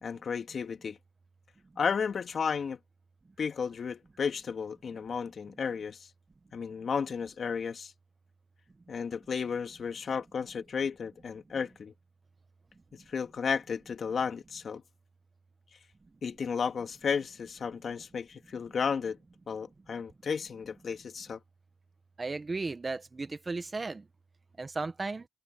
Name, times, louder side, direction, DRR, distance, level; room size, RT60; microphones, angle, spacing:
voice 1, 0.0-1.0 1.8-2.8 3.4-6.1 6.5-7.9 8.9-11.9 12.9-14.8 16.2-19.2 19.5-21.4, left 6 dB, 45° left, 2.4 m, -33 dB
voice 2, 22.2-24.1 24.6-25.3, right 3 dB, 25° right, 1.4 m, -35 dB
cardioid pair, 90°, 0 cm